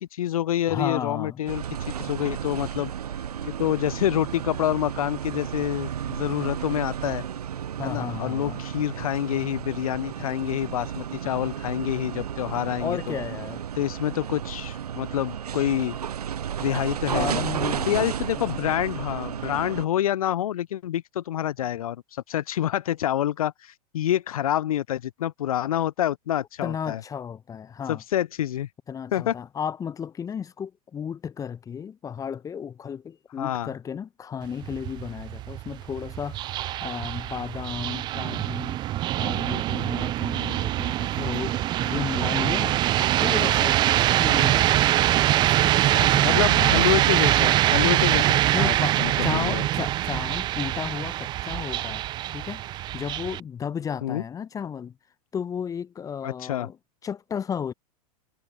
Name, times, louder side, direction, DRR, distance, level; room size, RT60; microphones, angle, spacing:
voice 1, 0.0-2.9 3.4-7.3 7.8-13.2 13.8-16.0 16.6-17.4 17.9-27.0 27.9-28.7 29.1-29.3 33.4-33.7 46.2-49.7 54.0-54.2 56.2-56.7, left 11 dB, 65° left, 0.5 m, -27 dB
voice 2, 0.7-1.4 7.8-8.6 12.8-13.6 17.1-18.1 18.4-18.6 26.6-28.0 28.9-45.0 45.4-46.8 48.5-52.0 52.3-55.0 55.3-56.8 57.0-57.7, left 7 dB, 15° left, 0.9 m, -34 dB
sound 1, 1.5-19.9, right 9 dB, 70° right, 0.5 m, -33 dB
sound 2, 34.4-53.4, right 14 dB, 20° right, 0.4 m, -23 dB
figure-of-eight pair, 95°, 20 cm